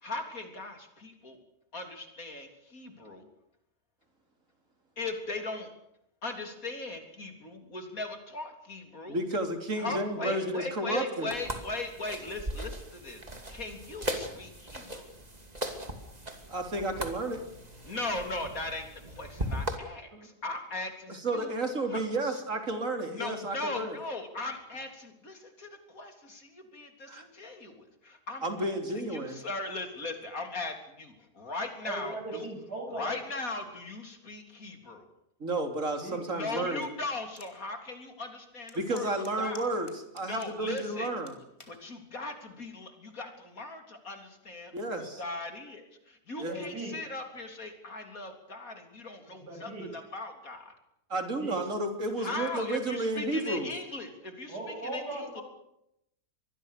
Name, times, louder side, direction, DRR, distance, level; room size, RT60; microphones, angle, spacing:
voice 1, 0.0-1.4 1.7-3.3 5.0-5.7 6.2-9.2 9.8-13.2 13.5-15.1 17.8-21.5 21.9-22.0 23.1-32.4 32.9-35.1 36.3-39.1 39.4-39.6 40.3-41.1 41.7-50.7 52.2-55.4, left 2 dB, 60° left, 5 dB, 4.0 m, -39 dB
voice 2, 9.1-11.4 16.5-17.4 20.1-20.3 21.1-24.0 27.1-27.2 28.4-29.4 35.4-36.9 38.8-41.3 44.7-45.2 46.4-46.6 51.1-53.7, right 2 dB, 50° right, 6 dB, 3.7 m, -32 dB
sound 1, 11.3-19.8, equal, 25° right, 2.8 m, -38 dB
voice 3, 31.8-33.1 36.0-36.2 46.4-47.0 49.3-49.9 51.4-51.6 54.5-55.4, right 2 dB, 80° right, 3 dB, 8.0 m, -38 dB
sound 2, 37.4-37.5 38.0-38.1 38.7-40.9 41.3-41.8 42.5-42.8, left 1 dB, 15° left, 4.1 m, -51 dB
25.5 x 20.5 x 6.7 m, 0.79 s
omnidirectional pair, 1.7 m